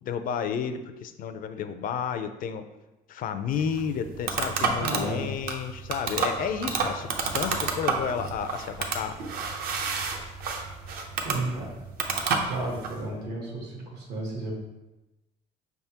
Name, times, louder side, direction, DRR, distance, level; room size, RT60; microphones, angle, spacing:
voice 1, 0.0-2.7 3.1-9.2, left 7 dB, 55° left, 9 dB, 0.4 m, -31 dB
sound 1, 3.5-13.0, right 5 dB, 65° right, 0.7 m, -30 dB
voice 2, 4.8-5.3 11.2-11.8 12.5-14.5, right 2 dB, 80° right, -1 dB, 1.4 m, -33 dB
5.3 x 3.5 x 2.8 m, 1.0 s
cardioid pair, 110°, 17 cm